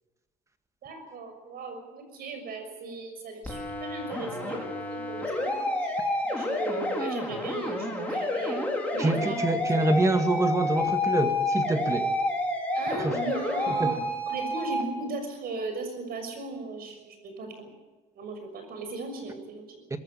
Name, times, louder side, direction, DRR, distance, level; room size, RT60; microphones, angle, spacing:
voice 1, 0.8-4.6 4.9-6.0 6.3-9.8 12.7-14.0 14.3-17.7 18.1-19.8, right 3 dB, 65° right, 6 dB, 6.4 m, -37 dB
sound 1, 3.4-14.8, left 1 dB, 10° left, 5.2 m, -29 dB
voice 2, 9.0-12.1 13.0-13.2 13.7-14.0 19.9-20.0, right 2 dB, 20° right, 7 dB, 2.1 m, -26 dB
22.0 x 15.0 x 8.7 m, 1.2 s
cardioid pair, 110°, 17 cm